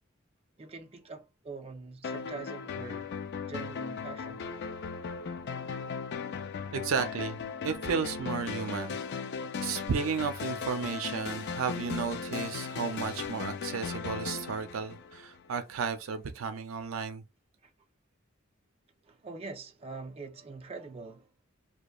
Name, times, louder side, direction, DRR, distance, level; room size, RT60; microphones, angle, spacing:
voice 1, 0.6-3.1 3.5-4.5 17.6-17.7 19.0-21.3, right 4 dB, 30° right, 0.5 m, -44 dB
sound 1, 2.0-15.6, left 6 dB, 55° left, 0.3 m, -37 dB
voice 2, 6.7-9.0 9.6-17.2, right 6 dB, 90° right, 0.4 m, -33 dB
2.9 x 2.2 x 2.3 m
head